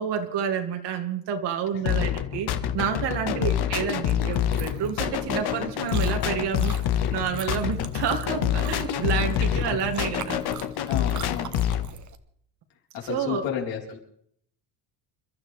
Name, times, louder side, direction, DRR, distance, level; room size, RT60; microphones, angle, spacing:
voice 1, 0.0-10.4 13.1-13.4, right 7 dB, 60° right, 4 dB, 2.5 m, -29 dB
sound 1, 1.9-11.9, left 10 dB, 55° left, 1.6 m, -27 dB
Chewing mastication, 4.3-12.1, right 8 dB, 40° right, 1.1 m, -42 dB
voice 2, 10.9-11.6 12.9-14.0, left 8 dB, 70° left, -1 dB, 4.4 m, -32 dB
29.0 x 12.5 x 3.4 m, 0.69 s
cardioid pair, 125°, 47 cm